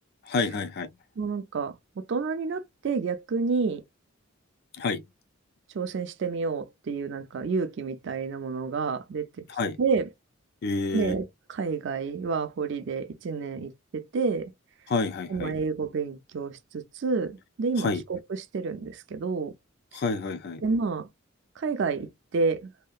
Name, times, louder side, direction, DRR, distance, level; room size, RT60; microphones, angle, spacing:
voice 1, 0.3-0.9 4.8-5.0 9.5-9.8 10.6-11.1 14.9-15.5 17.8-18.0 19.9-20.6, left 3 dB, 50° left, 0.4 m, -28 dB
voice 2, 1.2-1.8 2.1-3.8 5.7-9.5 9.8-10.1 10.9-14.5 15.3-19.5 19.9-20.0 20.6-21.1 21.6-22.7, right 4 dB, 60° right, 0.4 m, -29 dB
2.8 x 2.4 x 2.2 m
head